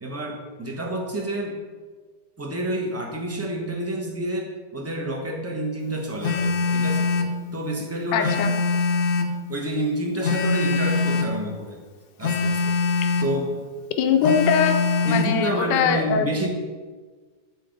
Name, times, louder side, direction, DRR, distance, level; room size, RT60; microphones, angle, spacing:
voice 1, 0.0-1.6 2.4-7.1 7.5-8.3 9.5-11.8 12.2-12.6 13.2-13.5 15.1-16.5, right 1 dB, 20° right, 1 dB, 0.4 m, -28 dB
Telephone, 6.2-7.4 8.2-9.4 10.2-11.4 12.2-13.4 14.2-15.4, left 3 dB, 65° left, 1.0 m, -23 dB
voice 2, 8.1-8.5 14.0-14.8 15.0-16.3, left 7 dB, 85° left, 5 dB, 1.3 m, -21 dB
8.3 x 3.9 x 5.0 m, 1.4 s
omnidirectional pair, 1.9 m